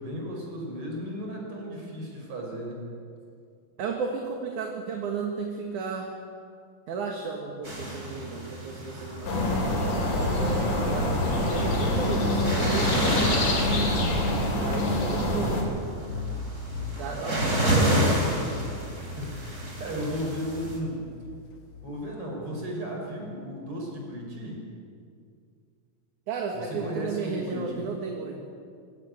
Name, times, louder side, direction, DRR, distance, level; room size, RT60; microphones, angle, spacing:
voice 1, 0.0-2.9 10.5-11.3 17.0-18.0 19.0-21.1 21.8-24.6 26.5-27.9, equal, 40° right, 0 dB, 6.4 m, -35 dB
voice 2, 3.8-6.1 6.9-9.6 10.1-11.2 11.5-14.0 14.6-15.8 17.0-18.1 26.3-28.4, right 5 dB, 65° right, 2 dB, 3.1 m, -34 dB
sound 1, 7.6-20.8, right 1 dB, 20° right, 4.6 m, -30 dB
sound 2, 9.2-15.6, left 1 dB, 65° left, 5.7 m, -25 dB
sound 3, 16.1-22.1, left 4 dB, 45° left, 2.5 m, -39 dB
22.5 x 16.5 x 9.4 m, 2.3 s
omnidirectional pair, 3.9 m